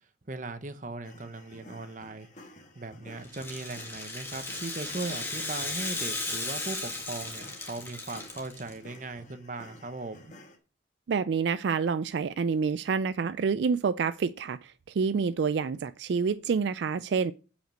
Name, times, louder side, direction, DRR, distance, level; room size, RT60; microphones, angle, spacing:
voice 1, 0.3-2.3 2.7-10.3, right 2 dB, 40° right, 0.9 m, -38 dB
sound 1, 1.0-10.6, left 1 dB, 40° left, 1.5 m, -52 dB
Rattle (instrument), 3.2-8.7, left 2 dB, 10° left, 1.6 m, -36 dB
voice 2, 11.1-17.3, right 5 dB, 70° right, 0.3 m, -28 dB
7.9 x 5.1 x 7.4 m
head